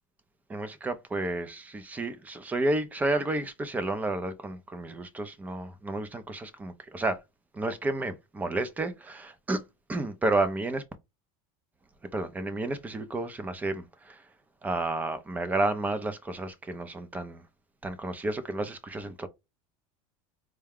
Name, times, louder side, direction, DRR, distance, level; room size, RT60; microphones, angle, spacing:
voice 1, 0.5-7.2 7.5-9.6 9.9-10.8 12.1-14.3 14.6-17.4 17.8-19.3, right 2 dB, 10° right, 0.4 m, -31 dB
4.6 x 2.2 x 3.5 m
cardioid pair, 165°, 17 cm